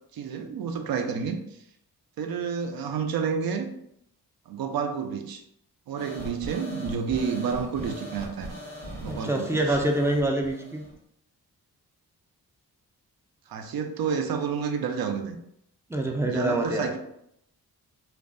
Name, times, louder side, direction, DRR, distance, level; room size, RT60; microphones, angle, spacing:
voice 1, 0.1-1.4 2.2-3.7 4.5-5.4 5.9-8.5 9.0-9.8 13.5-15.4 16.2-17.0, right 6 dB, 60° right, 6 dB, 0.5 m, -30 dB
sound 1, 6.0-10.9, equal, 85° right, 1.2 m, -40 dB
voice 2, 9.1-10.8 15.9-16.9, right 1 dB, 5° right, 1 dB, 0.4 m, -26 dB
2.5 x 2.2 x 2.4 m, 0.74 s
supercardioid pair, 40°, 41 cm